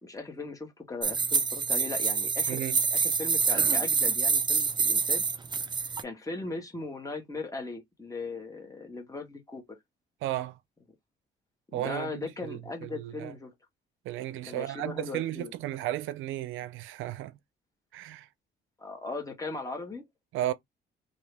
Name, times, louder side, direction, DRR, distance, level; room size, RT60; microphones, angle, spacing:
voice 1, 0.0-2.6 2.9-5.2 6.0-9.8 11.7-13.5 14.4-15.5 18.8-20.1, left 3 dB, 15° left, 1.3 m, -38 dB
sound 1, 1.0-6.0, right 5 dB, 25° right, 0.4 m, -26 dB
voice 2, 2.5-2.8 10.2-10.6 11.7-13.3 14.0-17.4 17.9-18.3 20.3-20.5, right 14 dB, 90° right, 0.4 m, -34 dB
2.7 x 2.7 x 3.3 m
cardioid pair, 90°, 20 cm